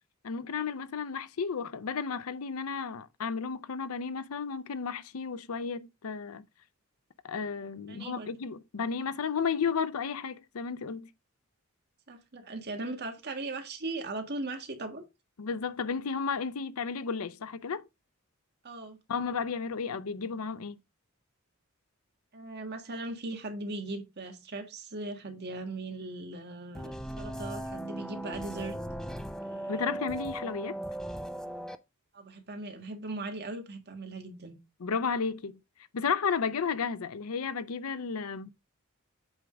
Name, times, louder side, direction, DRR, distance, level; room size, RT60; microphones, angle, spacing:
voice 1, 0.2-6.4 7.2-11.1 15.4-17.9 19.1-20.8 29.7-30.8 34.8-35.6 35.9-38.5, left 5 dB, 80° left, 0.6 m, -33 dB
voice 2, 7.9-8.3 12.1-15.0 18.6-19.0 22.3-28.7 29.4-30.0 32.1-34.6, right 2 dB, 50° right, 1.5 m, -39 dB
sound 1, 26.7-31.8, right 1 dB, 5° left, 0.4 m, -38 dB
8.0 x 3.5 x 5.0 m
head